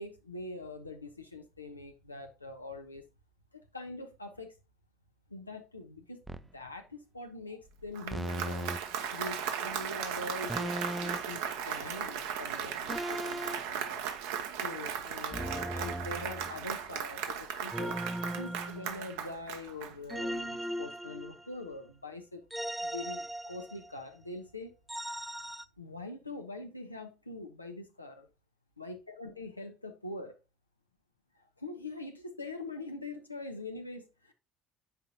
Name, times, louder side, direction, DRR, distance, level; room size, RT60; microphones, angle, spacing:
voice 1, 0.0-3.0 3.5-4.5 5.3-8.7 9.1-14.1 14.6-18.0 18.4-22.4 22.8-24.7 25.8-28.3 28.8-30.4 31.6-34.3, left 2 dB, 90° left, 0.8 m, -43 dB
sound 1, 6.3-6.5 8.1-8.8 10.5-11.4 12.9-13.6 15.3-16.8 17.7-19.3 20.1-21.7 22.5-24.0 24.9-25.6, right 1 dB, 5° right, 0.5 m, -38 dB
Applause, 7.8-20.4, right 8 dB, 65° right, 0.8 m, -37 dB
7.9 x 5.2 x 2.8 m
figure-of-eight pair, 60°, 0 cm